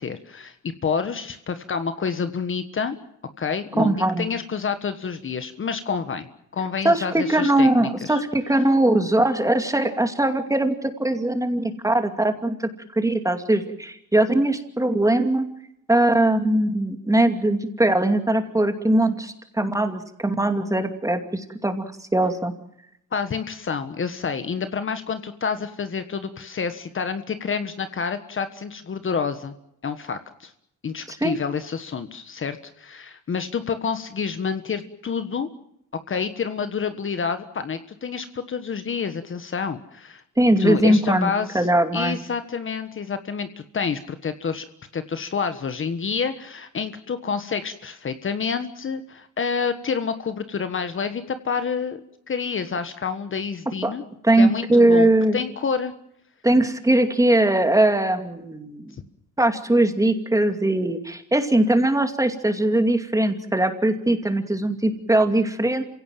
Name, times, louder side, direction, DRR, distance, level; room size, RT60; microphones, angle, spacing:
voice 1, 0.0-3.0 3.4-6.3 6.5-8.2 23.1-29.5 29.8-30.5 30.8-35.5 36.1-40.2 40.6-41.7 41.9-44.6 44.9-54.0 54.4-55.9, left 6 dB, 40° left, 10 dB, 1.5 m, -28 dB
voice 2, 3.8-4.3 6.8-15.5 15.9-22.5 31.1-31.4 40.4-41.3 41.5-42.2 53.8-53.9 54.2-55.4 56.4-58.9 59.4-65.8, right 1 dB, 10° right, 6 dB, 2.5 m, -20 dB
27.5 x 17.0 x 7.6 m, 0.78 s
cardioid pair, 90°, 30 cm